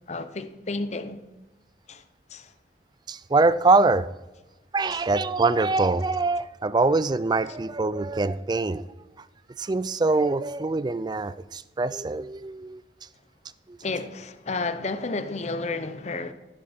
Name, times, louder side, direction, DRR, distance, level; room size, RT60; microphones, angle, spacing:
voice 1, 0.1-1.2 1.9-2.0 2.3-2.5 4.9-5.0 13.8-16.3, left 3 dB, 40° left, 0.7 m, -31 dB
voice 2, 3.1-4.1 4.7-8.8 9.6-12.8 13.7-13.8, right 3 dB, 25° right, 0.4 m, -23 dB
11.0 x 10.5 x 4.3 m
head